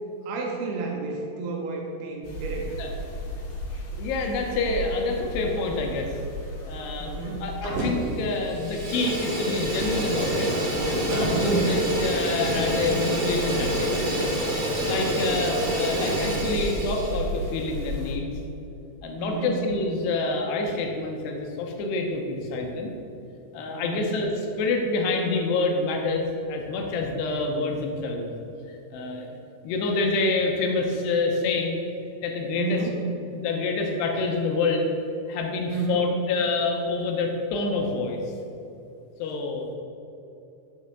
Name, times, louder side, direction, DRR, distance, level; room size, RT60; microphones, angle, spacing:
voice 1, 0.2-2.8 7.0-7.5 11.3-11.8 15.1-15.5 19.2-19.6 23.7-24.1 32.6-33.0 35.7-36.1, right 4 dB, 80° right, 0 dB, 2.5 m, -31 dB
sound 1, 2.2-18.1, equal, 65° left, 2.5 m, -36 dB
voice 2, 4.0-6.2 6.7-7.1 7.4-10.5 10.9-13.9 14.8-18.3 19.0-22.9 23.5-24.3 24.6-28.3 28.7-29.4 29.6-31.8 32.2-32.8 33.3-34.9 35.3-38.2 39.2-39.7, left 3 dB, 80° left, 2 dB, 2.6 m, -27 dB
Fire, 7.6-8.1 8.4-17.2, equal, 50° right, 2.1 m, -27 dB
6.8 x 5.2 x 6.9 m, 2.8 s
omnidirectional pair, 5.1 m